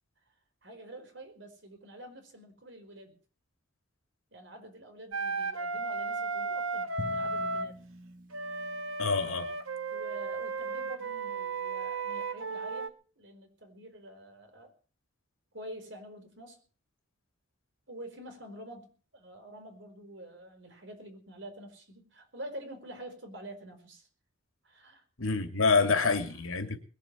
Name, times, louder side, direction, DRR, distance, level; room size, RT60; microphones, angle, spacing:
voice 1, 0.6-3.2 4.3-7.8 9.2-9.3 9.9-14.7 15.5-16.7 17.9-24.1 24.6-25.0 25.7-26.3, right 1 dB, 60° right, 4.8 m, -47 dB
Wind instrument woodwind instrument, 5.1-7.7 8.3-12.9, right 3 dB, 85° right, 1.5 m, -34 dB
Drum, 7.0-9.9, equal, 40° right, 1.9 m, -46 dB
voice 2, 9.0-9.5 25.2-26.8, left 4 dB, 85° left, 2.7 m, -27 dB
21.0 x 7.4 x 8.4 m
head